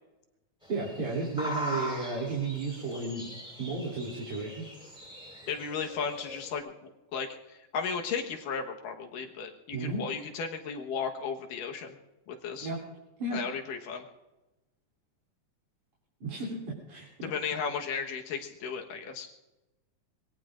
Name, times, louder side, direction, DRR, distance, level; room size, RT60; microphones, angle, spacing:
sound 1, 0.6-6.6, equal, ahead, 4.4 m, -41 dB
voice 1, 0.7-3.3 3.6-4.6 9.7-10.0 12.6-12.8 13.2-13.4 16.2-17.1, right 3 dB, 65° right, -4 dB, 4.5 m, -33 dB
voice 2, 5.5-12.0 12.3-12.7 13.3-14.1 17.2-19.3, left 6 dB, 85° left, 3 dB, 2.9 m, -35 dB
25.0 x 21.0 x 2.5 m, 1.0 s
omnidirectional pair, 3.7 m